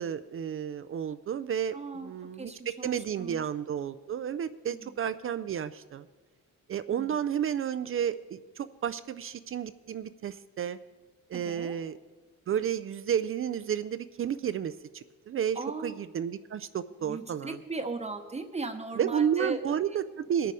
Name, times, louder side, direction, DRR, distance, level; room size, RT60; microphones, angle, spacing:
voice 1, 0.0-1.8 2.0-6.1 6.7-10.8 11.3-12.0 12.5-17.6 19.0-20.5, right 8 dB, 40° right, 13 dB, 0.4 m, -32 dB
voice 2, 1.7-2.1 2.4-3.4 4.7-5.0 6.9-7.2 11.3-11.8 15.5-16.0 17.0-19.8, right 3 dB, 20° right, 5 dB, 0.8 m, -38 dB
19.5 x 6.8 x 4.8 m, 1.3 s
cardioid pair, 115°, 34 cm